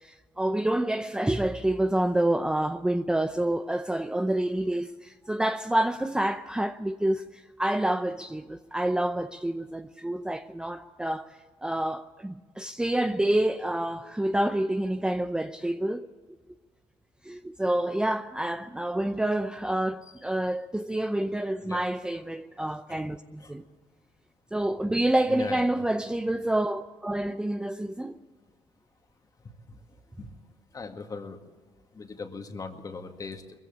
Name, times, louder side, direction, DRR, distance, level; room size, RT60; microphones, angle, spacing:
voice 1, 0.0-16.1 17.2-23.6 24.5-28.2, right 1 dB, 10° right, 0.6 m, -28 dB
voice 2, 25.3-25.8 29.7-29.8 30.2-30.3 30.7-31.4 31.9-33.6, left 4 dB, 35° left, 2.1 m, -39 dB
21.5 x 15.0 x 8.5 m
cardioid pair, 95°, 10 cm